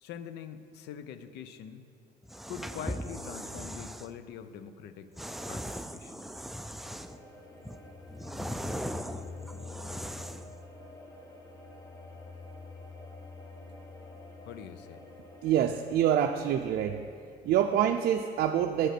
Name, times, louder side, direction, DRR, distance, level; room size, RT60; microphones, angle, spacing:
voice 1, 0.0-1.9 2.5-5.1 5.5-6.1 14.5-15.1, left 8 dB, 80° left, 11 dB, 0.6 m, -44 dB
sound 1, 2.2-4.1 5.2-7.2 7.6-10.5, equal, ahead, 0.3 m, -39 dB
sound 2, 6.9-16.2, left 3 dB, 20° left, 1.2 m, -47 dB
voice 2, 15.4-17.1 17.4-18.9, right 10 dB, 65° right, 5 dB, 0.5 m, -26 dB
8.3 x 7.9 x 5.9 m, 2.5 s
cardioid pair, 110°, 17 cm